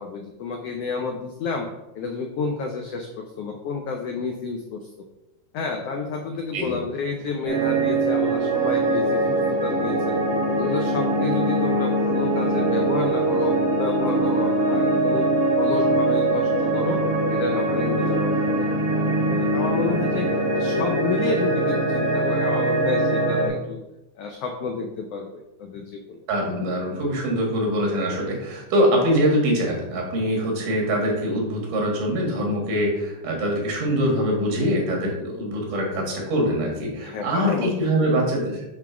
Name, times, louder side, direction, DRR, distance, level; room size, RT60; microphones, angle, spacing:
voice 1, 0.0-1.7 1.9-5.1 5.5-10.2 10.6-15.3 15.5-17.0 17.3-18.7 19.0-20.3 20.5-23.8 24.2-26.2 37.0-38.1, left 4 dB, 85° left, 3 dB, 1.3 m, -30 dB
sound 1, 7.5-23.5, right 2 dB, 65° right, 3.5 m, -22 dB
voice 2, 26.3-38.8, equal, 90° right, 0 dB, 3.5 m, -23 dB
7.8 x 3.7 x 5.8 m, 0.96 s
omnidirectional pair, 3.6 m